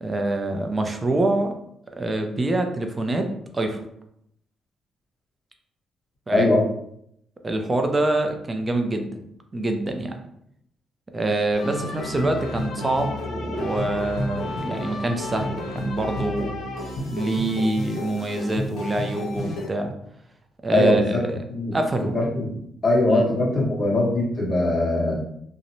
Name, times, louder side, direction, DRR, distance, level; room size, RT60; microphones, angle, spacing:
voice 1, 0.0-1.5 1.9-3.3 3.5-3.8 6.3-6.5 7.4-9.2 9.5-10.1 11.1-16.6 17.1-19.9 20.6-21.4 21.7-22.1 23.1-23.3, right 2 dB, 25° right, 5 dB, 0.4 m, -25 dB
voice 2, 6.3-6.6 20.7-21.2 21.5-22.5 22.8-25.1, left 2 dB, 30° left, -6 dB, 1.3 m, -21 dB
sound 1, 11.5-19.7, left 1 dB, 70° left, 0.6 m, -31 dB
2.7 x 2.0 x 2.6 m, 0.73 s
cardioid pair, 90°, 0 cm